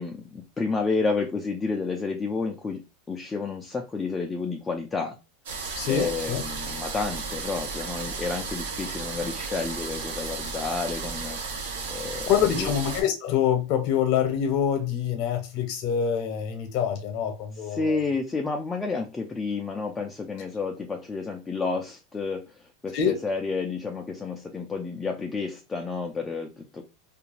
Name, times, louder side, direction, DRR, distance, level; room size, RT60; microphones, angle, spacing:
voice 1, 0.0-2.8 3.1-5.2 5.9-11.4 11.9-12.7 17.5-26.8, left 4 dB, 10° left, 0.3 m, -30 dB
sound 1, 5.5-13.0, right 4 dB, 90° right, 0.9 m, -34 dB
voice 2, 5.8-6.4 12.3-18.0 22.9-23.2, left 8 dB, 50° left, 0.7 m, -25 dB
2.4 x 2.2 x 3.0 m
supercardioid pair, 150°, 0 cm